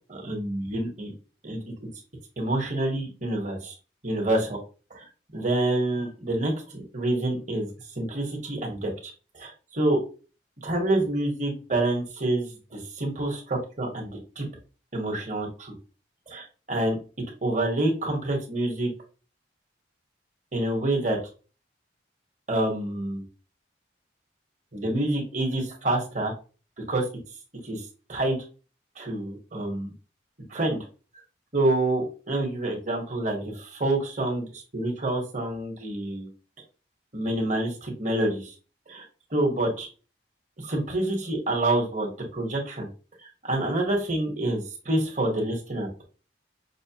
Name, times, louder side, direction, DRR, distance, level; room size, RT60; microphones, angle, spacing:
voice 1, 0.1-1.1 1.4-1.7 2.4-3.7 4.0-4.6 4.9-5.0 5.3-7.7 7.9-10.0 10.6-14.1 14.4-14.5 14.9-15.7 16.3-17.0 17.4-18.9 20.5-21.2 22.5-23.2 24.7-26.3 26.9-27.0 27.6-27.8 28.1-28.4 29.0-29.9 30.5-30.8 31.5-36.3 37.1-38.5 38.9-39.0 39.3-39.9 40.6-42.9 43.4-46.0, right 1 dB, 40° right, 0 dB, 1.3 m, -27 dB
6.0 x 2.1 x 2.9 m, 0.34 s
head